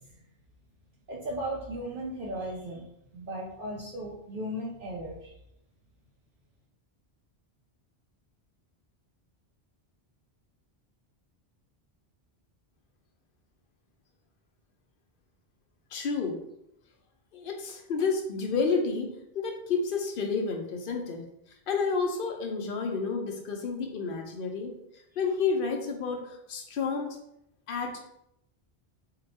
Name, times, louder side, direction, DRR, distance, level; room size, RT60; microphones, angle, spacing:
voice 1, 1.1-2.8 3.1-5.3, right 1 dB, 60° right, -3 dB, 0.7 m, -36 dB
voice 2, 15.9-16.4 17.3-21.2 21.7-24.8 25.2-27.1 27.7-28.0, left 4 dB, 65° left, 3 dB, 0.7 m, -30 dB
2.8 x 2.2 x 4.0 m, 0.79 s
omnidirectional pair, 1.0 m